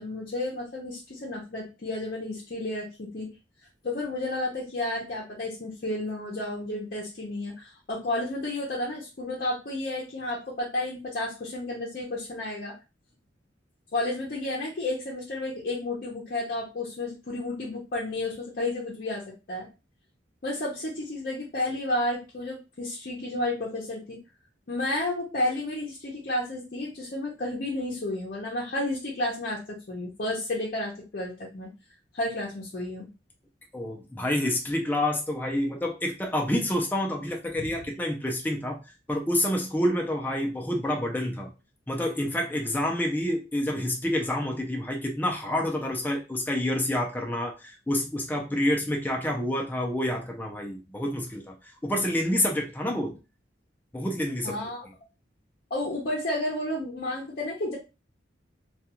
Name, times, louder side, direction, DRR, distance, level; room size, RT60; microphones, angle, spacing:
voice 1, 0.0-3.3 3.8-12.7 13.9-19.7 20.4-24.2 24.7-31.7 32.1-33.1 37.6-37.7 54.4-54.9 55.7-57.8, left 1 dB, 55° left, -5 dB, 0.7 m, -31 dB
voice 2, 33.7-38.8 39.1-41.5 41.9-51.5 51.8-53.2 53.9-54.6, left 1 dB, 10° left, 1 dB, 0.5 m, -28 dB
2.3 x 2.3 x 2.8 m, 0.29 s
head